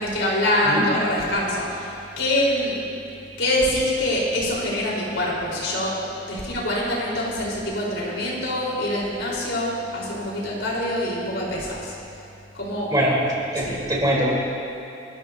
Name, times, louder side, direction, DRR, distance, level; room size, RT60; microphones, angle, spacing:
voice 1, 0.0-2.7 3.4-5.9 6.2-11.9 12.5-12.9 13.5-13.8, left 1 dB, 90° left, -5 dB, 4.1 m, -25 dB
voice 2, 13.5-14.3, right 1 dB, 20° right, -5 dB, 3.5 m, -22 dB
29.5 x 12.5 x 2.7 m, 2.6 s
head